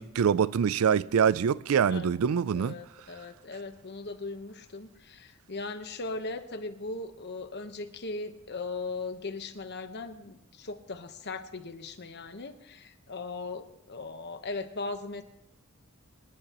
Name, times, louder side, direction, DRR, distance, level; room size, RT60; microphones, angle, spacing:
voice 1, 0.0-2.8, right 7 dB, 75° right, 0.4 m, -25 dB
voice 2, 2.5-15.2, left 3 dB, 50° left, 1.1 m, -38 dB
28.0 x 10.5 x 3.0 m
head